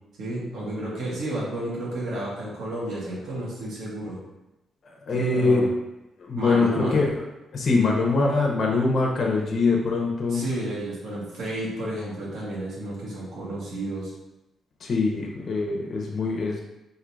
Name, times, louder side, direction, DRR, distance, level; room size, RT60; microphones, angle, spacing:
voice 1, 0.2-4.2 5.1-5.7 6.3-7.0 10.3-14.1, right 1 dB, 65° right, -6 dB, 1.4 m, -31 dB
voice 2, 4.8-5.6 6.2-7.1 7.5-10.4 14.8-16.6, left 3 dB, 40° left, -1 dB, 0.7 m, -23 dB
3.8 x 2.7 x 4.6 m, 0.96 s
cardioid pair, 155°, 0 cm